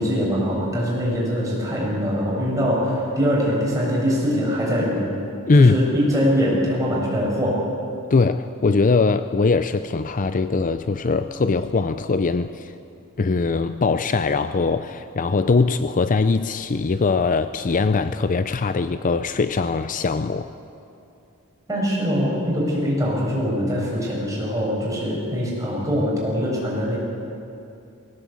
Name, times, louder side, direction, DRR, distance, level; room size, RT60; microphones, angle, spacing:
voice 1, 0.0-5.0 5.5-7.6 21.7-27.0, equal, 15° right, -5 dB, 7.1 m, -23 dB
voice 2, 5.5-5.8 8.1-12.7 13.2-20.5, left 4 dB, 40° left, 11 dB, 0.5 m, -21 dB
20.5 x 17.5 x 8.5 m, 2.7 s
head